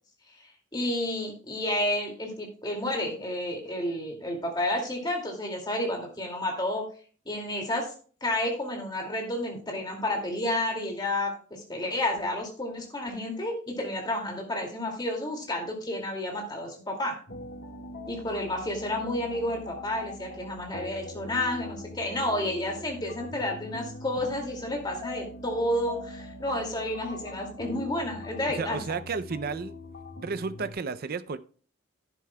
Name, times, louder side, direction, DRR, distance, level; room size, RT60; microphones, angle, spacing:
voice 1, 0.7-6.8 7.3-7.9 8.2-17.2 18.1-29.0, left 1 dB, 20° left, 2.3 m, -31 dB
sound 1, 17.3-30.7, left 2 dB, 55° left, 1.6 m, -42 dB
voice 2, 28.6-29.7 30.2-31.4, right 4 dB, 45° right, 0.4 m, -32 dB
11.0 x 10.5 x 2.2 m
head